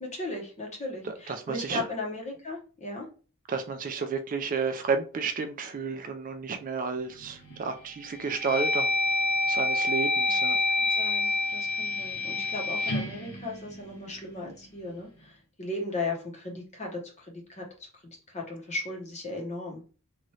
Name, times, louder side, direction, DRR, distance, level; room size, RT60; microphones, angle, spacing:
voice 1, 0.0-3.1 10.5-17.6 18.0-19.8, left 2 dB, 35° left, 0 dB, 1.0 m, -37 dB
voice 2, 1.0-1.8 3.5-8.9 9.5-10.6, right 5 dB, 40° right, 7 dB, 0.4 m, -31 dB
sound 1, 7.2-7.6 8.1-14.3, left 2 dB, 85° left, 1.0 m, -28 dB
2.9 x 2.5 x 3.1 m, 0.37 s
head